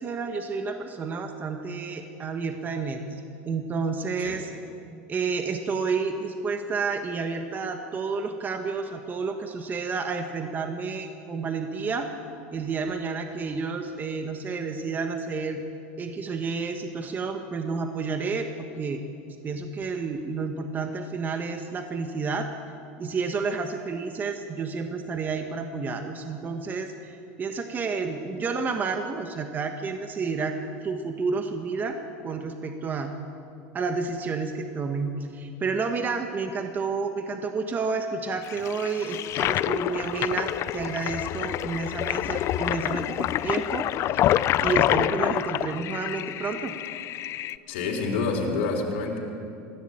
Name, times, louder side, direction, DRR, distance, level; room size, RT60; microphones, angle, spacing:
voice 1, 0.0-4.5 5.1-12.1 12.5-15.6 16.0-19.0 19.4-22.5 23.0-30.6 30.8-32.0 32.2-33.1 33.7-46.7, right 4 dB, 25° right, 5 dB, 1.5 m, -30 dB
Toilet flush, 38.4-47.6, left 13 dB, 45° left, 0.5 m, -27 dB
voice 2, 47.7-49.2, left 4 dB, 80° left, -1 dB, 3.6 m, -27 dB
20.0 x 15.5 x 8.8 m, 2.6 s
supercardioid pair, 120°, 7 cm